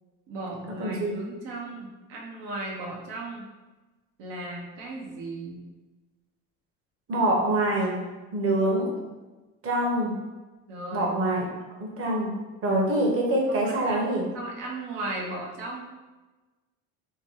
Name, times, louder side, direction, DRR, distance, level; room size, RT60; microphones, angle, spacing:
voice 1, 0.3-3.5 4.2-5.6 10.7-11.2 13.5-15.9, right 2 dB, 70° right, -2 dB, 0.9 m, -36 dB
voice 2, 0.8-1.1 7.1-8.0 8.3-8.9 9.6-10.2 10.9-11.4 11.8-12.4 12.6-14.2, right 1 dB, 35° right, -1 dB, 0.9 m, -25 dB
2.9 x 2.2 x 3.0 m, 1.2 s
hypercardioid pair, 75°, 41 cm